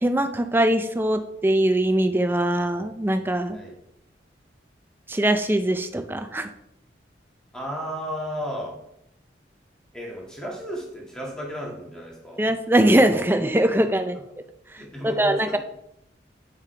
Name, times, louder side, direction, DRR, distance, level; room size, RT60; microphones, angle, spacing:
voice 1, 0.0-3.6 5.1-6.5 12.4-14.2 15.0-15.6, right 1 dB, 10° right, 8 dB, 0.5 m, -21 dB
voice 2, 7.5-8.7 9.9-12.5 14.8-15.6, equal, 5° left, -3 dB, 1.8 m, -34 dB
8.4 x 7.1 x 3.3 m, 0.80 s
head